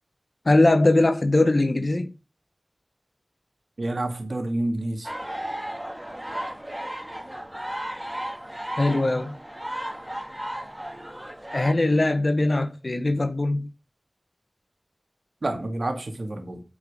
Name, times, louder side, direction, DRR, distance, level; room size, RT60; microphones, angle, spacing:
voice 1, 0.4-2.1 8.8-9.3 11.5-13.7, left 2 dB, 60° left, 1.7 m, -21 dB
voice 2, 3.8-5.1 15.4-16.6, right 1 dB, 80° right, 2.3 m, -28 dB
sound 1, 5.0-11.7, right 1 dB, 15° right, 2.3 m, -34 dB
8.7 x 7.7 x 5.0 m
wide cardioid pair, 40°, 0 cm